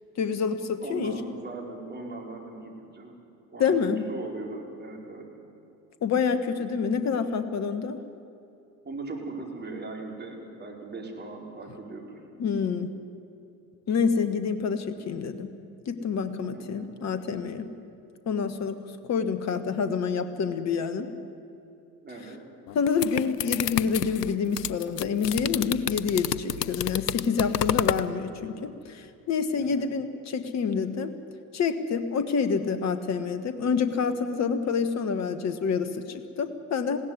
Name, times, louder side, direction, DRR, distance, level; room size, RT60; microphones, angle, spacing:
voice 1, 0.2-1.1 3.6-4.1 6.0-8.0 12.4-12.9 13.9-15.5 15.9-17.7 18.3-18.8 19.1-21.1 22.7-31.1 31.5-37.0, left 6 dB, 35° left, 10 dB, 1.4 m, -27 dB
voice 2, 0.8-3.2 3.5-3.8 4.1-5.3 8.8-12.1 16.5-17.0 22.0-22.4 29.5-29.9, right 3 dB, 20° right, 0 dB, 5.0 m, -39 dB
sound 1, 22.7-28.1, left 11 dB, 80° left, 0.7 m, -29 dB
21.0 x 16.5 x 9.7 m, 2.8 s
figure-of-eight pair, 70°, 47 cm